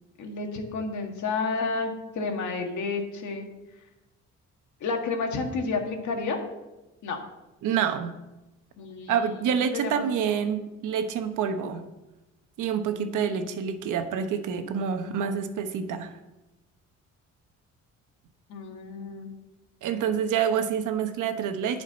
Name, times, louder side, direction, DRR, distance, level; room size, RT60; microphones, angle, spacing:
voice 1, 0.2-3.5 4.8-6.4 7.0-7.2 8.8-10.3 12.9-13.3 18.5-19.3, left 4 dB, 70° left, 3 dB, 1.9 m, -31 dB
voice 2, 7.6-8.2 9.1-11.8 12.6-16.2 19.8-21.8, right 7 dB, 85° right, 8 dB, 1.1 m, -27 dB
10.5 x 5.1 x 7.6 m, 1.0 s
cardioid pair, 90°, 30 cm